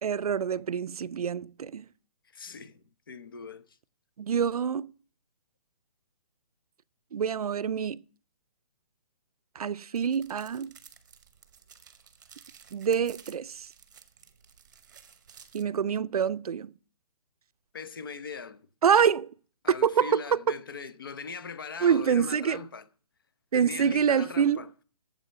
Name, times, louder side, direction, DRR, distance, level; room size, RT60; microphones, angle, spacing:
voice 1, 0.0-1.8 4.2-4.9 7.1-8.0 9.6-10.7 12.7-13.7 15.5-16.7 18.8-19.3 19.7-20.4 21.8-22.6 23.5-24.6, right 7 dB, 75° right, 0.5 m, -26 dB
voice 2, 2.3-3.8 17.7-18.7 19.6-22.9 23.5-24.7, left 5 dB, 35° left, 0.7 m, -40 dB
sound 1, 10.0-15.6, right 7 dB, 30° right, 0.8 m, -54 dB
8.4 x 7.5 x 6.8 m
hypercardioid pair, 180°, 19 cm